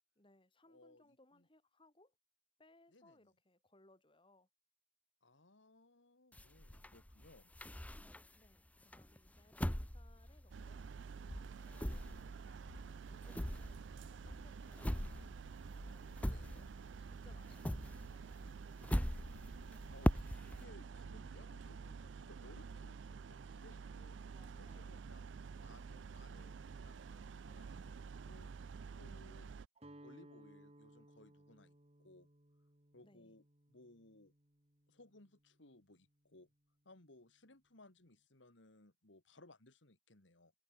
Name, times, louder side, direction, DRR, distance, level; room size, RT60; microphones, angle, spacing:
voice 1, 0.2-2.2 2.6-4.5 8.3-10.8 11.4-15.4 15.8-16.5 17.1-19.1 24.2-24.9 33.0-33.4, left 2 dB, 25° left, 4.4 m, -69 dB
voice 2, 0.7-1.5 2.9-3.3 5.2-7.5 14.8-15.1 16.3-16.7 19.9-24.2 24.6-25.3 25.5-28.5 29.0-29.5 30.0-32.3 32.9-33.4 33.7-34.3 34.9-36.5 36.8-40.5, left 2 dB, 75° left, 2.7 m, -63 dB
sound 1, 6.3-8.5 8.9-11.0 11.3-17.0 17.3-20.6, equal, 10° left, 0.8 m, -41 dB
sound 2, 10.5-29.7, right 5 dB, 70° right, 0.4 m, -50 dB
Guitar, 29.8-35.8, right 1 dB, 35° right, 3.2 m, -62 dB
head